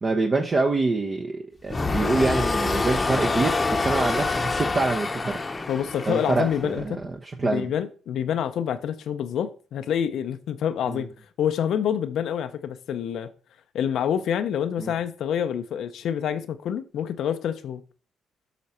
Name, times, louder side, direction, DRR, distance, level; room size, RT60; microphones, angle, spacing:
voice 1, 0.0-5.4 6.1-7.7 10.9-11.0 14.8-14.9, right 3 dB, 35° right, 0.9 m, -26 dB
sound 1, 1.7-6.9, left 3 dB, 25° left, 0.9 m, -26 dB
voice 2, 5.7-7.0 7.4-11.1 11.4-13.3 13.7-17.8, left 9 dB, 70° left, 0.6 m, -27 dB
8.1 x 5.8 x 4.3 m
cardioid pair, 90°, 0 cm